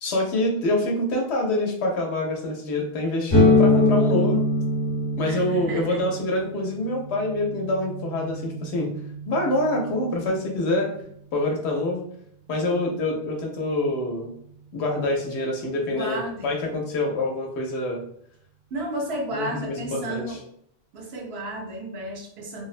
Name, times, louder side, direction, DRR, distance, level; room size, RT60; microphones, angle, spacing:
voice 1, 0.0-4.5 5.2-8.9 9.3-10.9 11.3-12.0 12.5-14.3 14.7-18.0 19.3-20.4, left 1 dB, 80° left, 1 dB, 0.9 m, -26 dB
sound 1, 3.3-10.9, left 2 dB, 45° left, 1.1 m, -24 dB
voice 2, 5.2-6.0 15.0-15.1 15.9-16.5 18.7-20.4 20.9-22.7, right 1 dB, 70° right, 0 dB, 0.9 m, -33 dB
2.7 x 2.1 x 2.4 m, 0.68 s
omnidirectional pair, 1.1 m